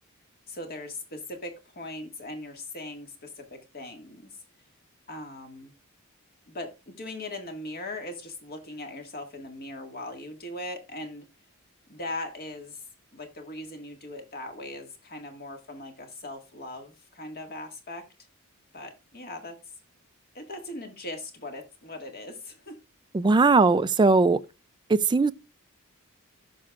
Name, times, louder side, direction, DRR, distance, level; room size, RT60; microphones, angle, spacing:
voice 1, 0.5-4.4 5.1-5.7 6.5-11.3 11.9-12.8 13.1-18.0 18.7-19.6 20.3-22.8, left 1 dB, 45° left, 1.9 m, -39 dB
voice 2, 23.1-24.4 24.9-25.3, right 3 dB, 20° right, 0.3 m, -19 dB
16.5 x 6.2 x 2.4 m
head